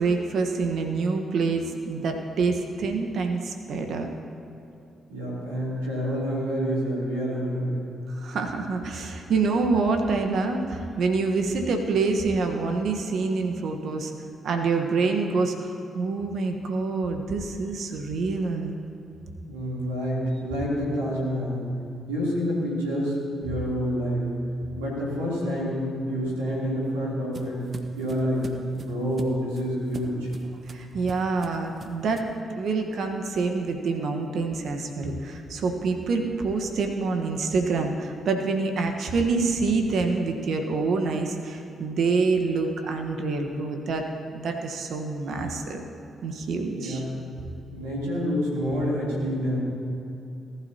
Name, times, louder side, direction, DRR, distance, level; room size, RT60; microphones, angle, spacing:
voice 1, 0.0-4.1 8.1-14.1 14.4-18.8 30.7-32.2 32.6-44.0 44.3-45.8 46.2-47.0, right 4 dB, 65° right, 4 dB, 1.3 m, -26 dB
voice 2, 5.1-7.7 19.5-21.7 22.1-24.3 24.7-27.6 27.9-28.4 28.7-30.3 46.7-47.1 47.7-49.6, equal, 90° right, -7 dB, 3.2 m, -28 dB
sound 1, 26.4-32.4, right 3 dB, 50° right, 1.0 m, -44 dB
19.0 x 11.5 x 2.9 m, 2.7 s
hypercardioid pair, 40°, 0 cm